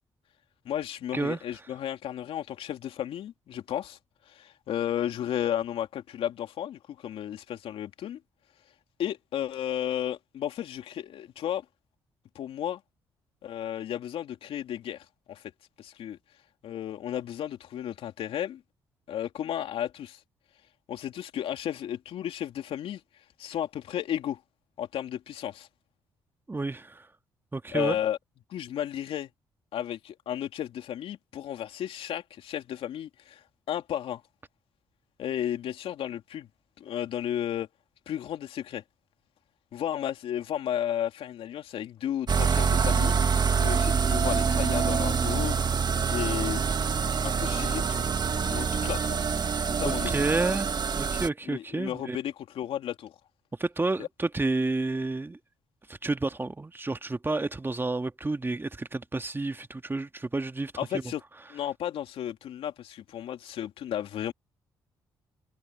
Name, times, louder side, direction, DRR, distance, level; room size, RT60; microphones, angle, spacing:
voice 1, 0.6-4.0 4.3-8.2 9.0-11.6 12.3-12.8 13.4-15.4 15.8-16.2 16.6-18.6 19.1-20.2 20.9-23.0 23.4-24.4 24.8-25.7 27.7-28.2 28.5-29.3 29.7-33.4 33.7-34.2 35.2-36.5 36.8-37.7 38.1-38.8 39.7-45.6 46.1-46.6 47.2-48.1 48.4-49.3 49.6-50.2 51.5-53.1 54.0-54.1 60.8-61.2 61.5-64.3, left 10 dB, 70° left, 2.9 m, -33 dB
voice 2, 26.5-27.1 27.5-28.0 49.8-52.2 53.6-55.4 55.9-60.7, right 2 dB, 20° right, 1.7 m, -30 dB
sound 1, 42.3-51.3, right 6 dB, 45° right, 1.6 m, -26 dB
supercardioid pair, 55°, 10 cm